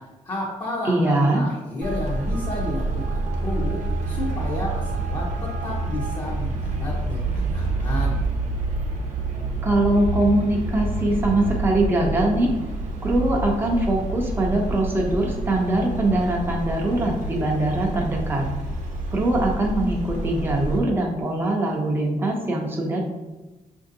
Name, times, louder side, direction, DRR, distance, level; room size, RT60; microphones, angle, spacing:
voice 1, 0.0-8.2, left 1 dB, 30° left, -4 dB, 0.6 m, -32 dB
voice 2, 0.9-1.4 9.6-12.5 13.0-18.5 19.1-23.0, right 1 dB, 15° right, -1 dB, 0.5 m, -22 dB
Traffic noise roadway noise, 1.8-20.8, right 2 dB, 60° right, 0.7 m, -28 dB
5.7 x 2.6 x 2.6 m, 1.1 s
wide cardioid pair, 160°, 14 cm